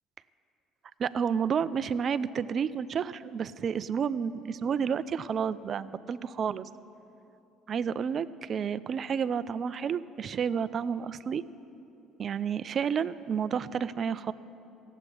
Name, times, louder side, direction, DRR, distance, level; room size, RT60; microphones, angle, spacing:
voice 1, 1.0-6.7 7.7-11.4 12.2-14.3, right 7 dB, 50° right, 15 dB, 0.5 m, -30 dB
15.5 x 8.2 x 10.0 m, 2.9 s
supercardioid pair, 80°, 0 cm